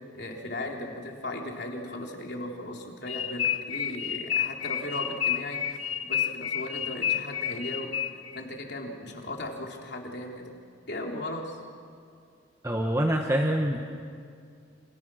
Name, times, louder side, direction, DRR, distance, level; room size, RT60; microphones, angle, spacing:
voice 1, 0.1-5.6 6.0-7.9 8.3-10.5 10.9-11.6, left 1 dB, 55° left, 0 dB, 3.8 m, -37 dB
sound 1, 3.1-8.4, left 9 dB, 90° left, 1.2 m, -30 dB
voice 2, 12.6-13.8, right 1 dB, 15° right, 1 dB, 1.3 m, -25 dB
29.5 x 27.5 x 6.4 m, 2.3 s
head